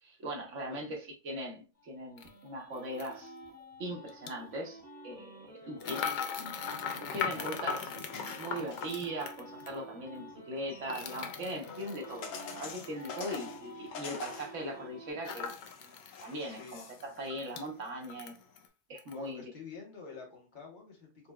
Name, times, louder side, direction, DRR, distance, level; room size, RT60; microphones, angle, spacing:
voice 1, 0.0-3.3 3.8-6.5 7.1-7.9 8.4-15.5 16.2-18.3 18.9-19.4, right 1 dB, 70° right, 1.4 m, -40 dB
sound 1, 1.7-6.1 6.4-11.3 11.6-15.1, equal, 10° left, 1.4 m, -50 dB
sound 2, 2.2-2.3 3.0-3.1 4.1-4.3 5.8-9.8 10.9-13.5 15.2-16.2 16.6-16.7 17.0-17.7 18.0-18.7 19.0-19.2, left 6 dB, 60° left, 0.5 m, -39 dB
voice 2, 5.6-6.0 13.8-13.9 16.4-16.8 18.6-18.7 19.1-21.3, left 5 dB, 40° left, 1.3 m, -49 dB
sound 3, 6.5-18.7, left 5 dB, 85° left, 1.1 m, -48 dB
4.5 x 3.0 x 2.3 m
omnidirectional pair, 1.3 m